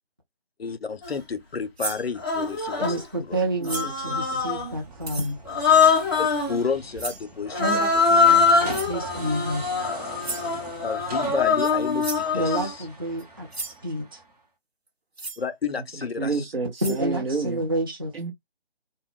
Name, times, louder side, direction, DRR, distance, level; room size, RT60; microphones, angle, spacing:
voice 1, 0.6-3.4 6.2-7.8 10.8-12.7 15.4-16.4, left 5 dB, 75° left, 0.5 m, -31 dB
Human voice, 1.0-1.2 2.2-3.0 3.7-4.7 5.5-6.6 7.5-12.7, left 5 dB, 25° left, 0.6 m, -23 dB
sound 1, 1.8-2.1 3.6-4.0 5.0-5.3 7.0-7.3 8.7-9.0 10.2-10.5 11.6-11.7 12.0-12.3 13.2-13.3 13.5-13.8 15.1-15.4 16.3-16.4 16.8-17.0, right 3 dB, 90° right, 0.9 m, -34 dB
voice 2, 2.8-5.4 7.6-9.6 12.3-14.2 16.8-18.1, right 1 dB, 25° right, 0.5 m, -29 dB
sound 2, 3.6-14.4, right 2 dB, 40° right, 0.9 m, -42 dB
voice 3, 3.6-4.4 16.2-17.6 18.1-18.3, right 4 dB, 70° right, 1.1 m, -30 dB
2.2 x 2.1 x 3.3 m
figure-of-eight pair, 150°, 31 cm